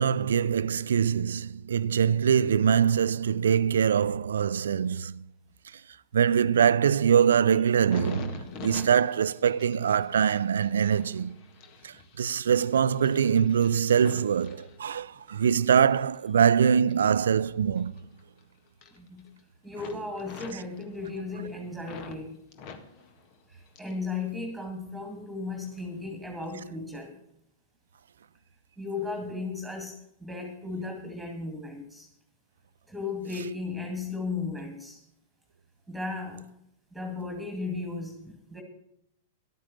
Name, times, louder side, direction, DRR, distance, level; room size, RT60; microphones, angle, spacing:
voice 1, 0.0-5.2 6.1-11.4 11.8-17.9, right 7 dB, 75° right, 0.4 m, -23 dB
sound 1, 7.7-15.4 15.8-18.4 18.7-19.4 19.7-22.2 22.5-24.1 24.4-25.1 25.6-25.9, left 5 dB, 45° left, 1.6 m, -47 dB
voice 2, 19.0-19.3 19.6-22.4 23.5-27.2 28.8-30.0 30.2-32.1 32.9-35.0 35.9-36.5 36.9-38.6, left 3 dB, 5° right, 2.3 m, -35 dB
12.0 x 9.2 x 7.2 m
hypercardioid pair, 105°, 0 cm